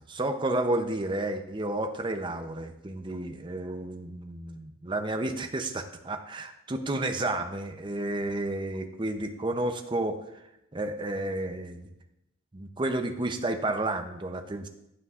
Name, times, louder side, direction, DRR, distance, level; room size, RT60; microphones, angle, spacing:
voice 1, 0.0-10.2 10.7-11.9 12.5-14.7, right 2 dB, 20° right, 6 dB, 0.6 m, -31 dB
15.0 x 8.3 x 2.5 m, 0.86 s
head